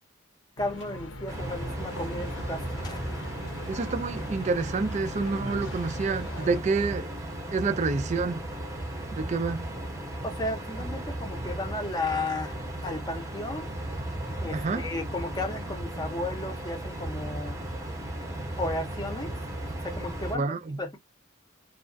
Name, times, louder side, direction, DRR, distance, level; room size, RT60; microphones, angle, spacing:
sound 1, 0.6-6.6, left 1 dB, 85° left, 0.9 m, -40 dB
voice 1, 0.6-3.0 10.2-13.7 14.4-17.6 18.6-19.3 19.8-20.4 20.8-21.0, left 2 dB, 20° left, 0.6 m, -34 dB
sound 2, 1.3-20.4, right 1 dB, 15° right, 0.7 m, -36 dB
voice 2, 3.7-7.1 7.5-8.5 9.1-9.7 14.5-14.9 20.3-20.8, right 4 dB, 35° right, 0.3 m, -28 dB
2.4 x 2.2 x 2.5 m
head